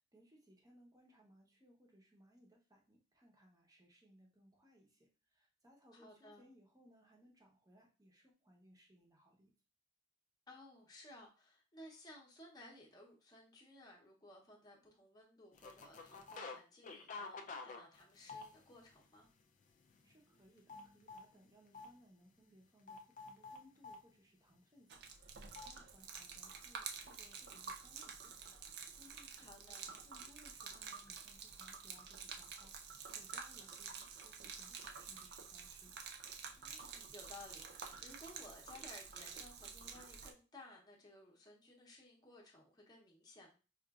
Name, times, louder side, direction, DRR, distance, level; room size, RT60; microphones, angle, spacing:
voice 1, 0.1-9.5 20.0-36.0, equal, 20° right, 0 dB, 0.8 m, -66 dB
voice 2, 5.9-6.5 10.5-19.3 29.4-29.9 36.6-43.6, left 1 dB, 20° left, -2 dB, 0.8 m, -58 dB
sound 1, 15.6-16.6 16.8-18.9 19.4-19.6 19.9-21.3 21.7-21.9 22.9-24.0 25.6-25.7, left 3 dB, 40° left, 0.4 m, -49 dB
Gurgling / Liquid, 24.9-40.3, right 6 dB, 55° right, 0.4 m, -50 dB
4.8 x 2.4 x 2.4 m, 0.34 s
head